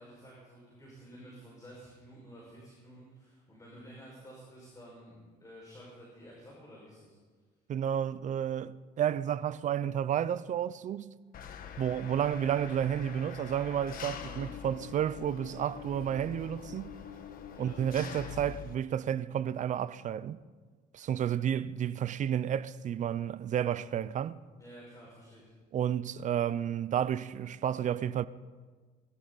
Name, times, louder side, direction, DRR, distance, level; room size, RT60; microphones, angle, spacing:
voice 1, 0.0-7.1 14.2-14.5 17.5-17.8 24.6-25.5, equal, 20° left, 5.6 m, -52 dB
voice 2, 7.7-11.1 11.8-17.0 17.6-20.4 20.9-24.4 25.7-28.3, right 9 dB, 45° right, 0.6 m, -31 dB
Engine, 11.3-18.7, left 7 dB, 60° left, 1.5 m, -44 dB
22.5 x 13.5 x 4.1 m
cardioid pair, 110°, 17 cm